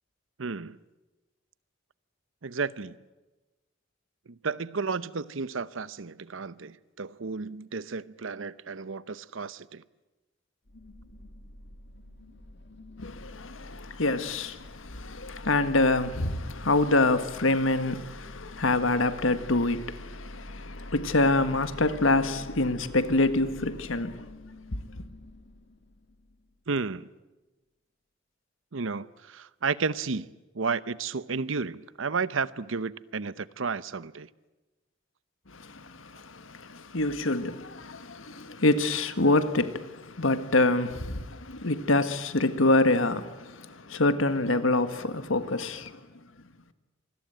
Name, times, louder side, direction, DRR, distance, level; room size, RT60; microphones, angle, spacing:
voice 1, 0.4-0.8 2.4-2.9 4.3-9.8 26.7-27.1 28.7-30.3 30.5-34.3, right 4 dB, 75° right, 0.8 m, -32 dB
sound 1, 10.7-26.6, left 1 dB, 60° left, 2.5 m, -46 dB
voice 2, 13.0-24.3 35.5-45.9, left 2 dB, 85° left, 1.7 m, -26 dB
27.0 x 21.0 x 9.1 m
head